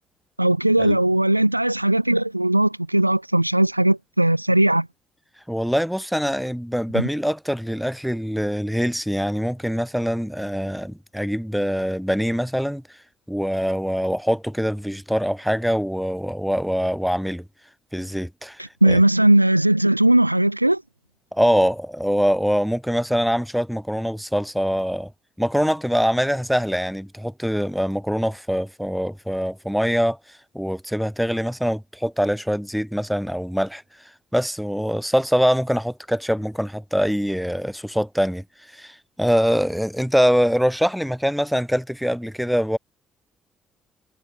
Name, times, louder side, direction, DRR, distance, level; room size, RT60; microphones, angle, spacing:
voice 1, 0.4-4.9 6.9-7.0 18.6-20.8, right 1 dB, 90° right, 1.2 m, -18 dB
voice 2, 5.5-12.8 13.3-17.4 17.9-19.0 21.3-25.1 25.4-30.2 30.5-33.8 34.3-38.4 38.7-42.8, equal, ahead, 7.7 m, -23 dB
figure-of-eight pair, 45°, 0 cm